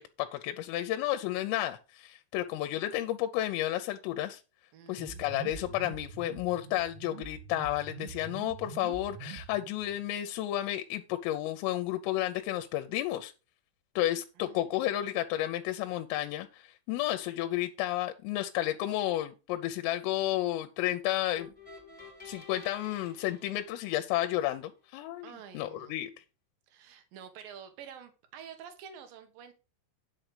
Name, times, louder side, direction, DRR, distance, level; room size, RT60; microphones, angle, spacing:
voice 1, 0.0-4.4 4.9-13.3 14.0-21.5 22.2-26.1, left 14 dB, 85° left, 3.4 m, -32 dB
voice 2, 4.7-5.5 14.4-14.7 25.2-26.0 26.7-29.5, right 8 dB, 65° right, 2.5 m, -49 dB
sound 1, 5.0-10.0, right 7 dB, 85° right, 3.9 m, -45 dB
sound 2, 21.3-24.6, left 4 dB, ahead, 4.0 m, -51 dB
10.0 x 6.3 x 4.9 m
omnidirectional pair, 5.9 m